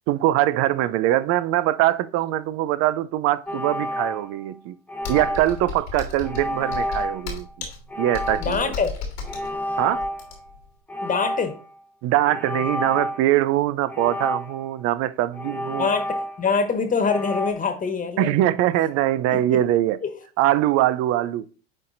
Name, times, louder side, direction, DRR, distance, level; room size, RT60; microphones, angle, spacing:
voice 1, 0.1-4.7 5.1-7.5 8.0-8.7 9.8-10.1 12.0-15.9 18.2-20.0 20.4-21.5, right 14 dB, 55° right, 0.5 m, -22 dB
sound 1, 3.5-4.5 4.9-5.7 6.2-7.3 7.9-8.7 9.2-10.5 10.9-11.7 12.2-13.3 13.9-14.8 15.3-16.6 17.0-17.5, left 1 dB, 5° left, 0.7 m, -30 dB
Computer keyboard, 5.0-10.6, left 4 dB, 85° left, 2.3 m, -34 dB
voice 2, 8.4-9.0 11.0-11.6 15.8-18.4 19.3-19.6 20.0-20.1, left 5 dB, 25° left, 1.4 m, -24 dB
9.6 x 4.3 x 2.6 m
hypercardioid pair, 80°, 30 cm